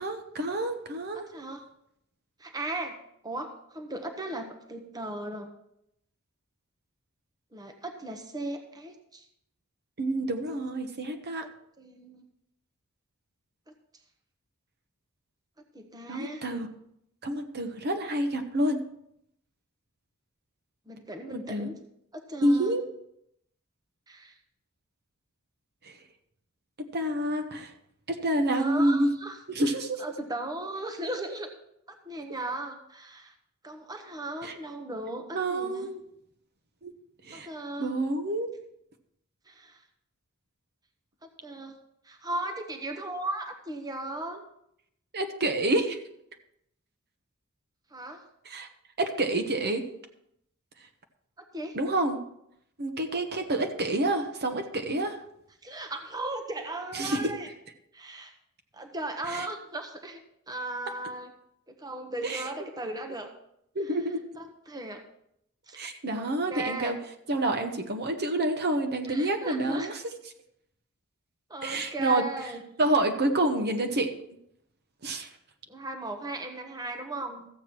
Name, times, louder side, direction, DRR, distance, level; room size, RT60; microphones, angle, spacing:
voice 1, 0.0-1.3 10.0-11.5 16.1-16.7 17.2-18.8 21.3-21.7 22.4-22.8 25.8-26.0 26.8-27.7 28.1-29.1 29.5-30.0 34.4-34.5 35.3-36.0 36.8-36.9 37.2-37.5 37.8-38.5 45.1-46.0 48.4-48.7 49.0-49.8 51.7-52.2 52.8-55.2 56.9-57.3 59.3-59.5 62.2-62.4 63.7-64.2 65.8-67.0 67.3-70.0 71.6-72.2 72.8-74.1 75.0-75.3, right 1 dB, 50° right, 5 dB, 1.1 m, -28 dB
voice 2, 1.1-1.6 2.4-3.0 3.2-5.5 7.5-9.2 11.4-11.5 11.8-12.3 15.7-16.4 20.9-21.7 22.1-22.8 24.1-24.3 28.5-29.4 30.0-31.5 32.0-33.3 33.6-35.9 37.3-37.9 39.5-39.8 41.2-41.8 42.0-44.4 47.9-48.2 51.5-51.8 55.6-57.5 57.9-58.3 58.7-60.2 60.5-61.3 61.7-63.3 64.4-65.0 65.7-65.8 66.1-67.0 69.1-69.9 71.5-72.6 75.7-77.5, right 2 dB, 15° right, 4 dB, 1.0 m, -37 dB
14.0 x 7.9 x 4.5 m, 0.76 s
head